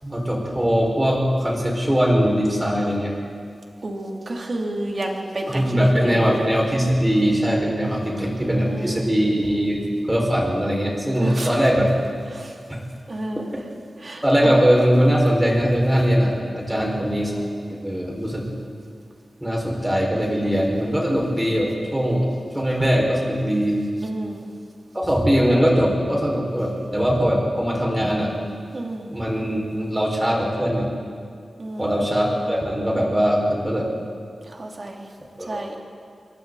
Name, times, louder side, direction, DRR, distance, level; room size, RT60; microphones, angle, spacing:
voice 1, 0.0-3.1 5.5-11.9 12.7-12.8 14.2-17.3 17.7-18.5 19.4-22.3 22.5-23.8 24.9-28.3 29.1-30.9 31.8-33.9 35.4-35.8, equal, 10° right, -2 dB, 5.6 m, -21 dB
voice 2, 3.8-6.4 8.0-9.1 11.2-11.5 12.3-12.5 13.1-13.5 14.0-14.6 16.7-17.1 20.5-20.7 24.0-24.4 28.7-29.1 31.6-32.0 34.5-35.1 35.5-35.7, right 1 dB, 40° right, 0 dB, 3.1 m, -31 dB
28.5 x 23.0 x 4.2 m, 2.2 s
wide cardioid pair, 100°, 0 cm